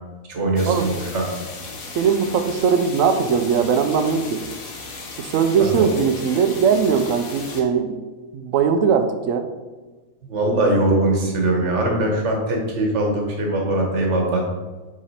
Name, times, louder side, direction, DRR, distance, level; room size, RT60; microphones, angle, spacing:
voice 1, 0.3-1.3 5.7-5.9 10.3-14.4, right 1 dB, 50° right, 1 dB, 1.4 m, -21 dB
sound 1, 0.6-7.6, left 3 dB, 70° left, 1.4 m, -36 dB
voice 2, 1.9-4.4 5.2-7.9 8.3-9.5, right 6 dB, 70° right, 8 dB, 0.9 m, -20 dB
6.4 x 3.9 x 4.2 m, 1.3 s
omnidirectional pair, 1.6 m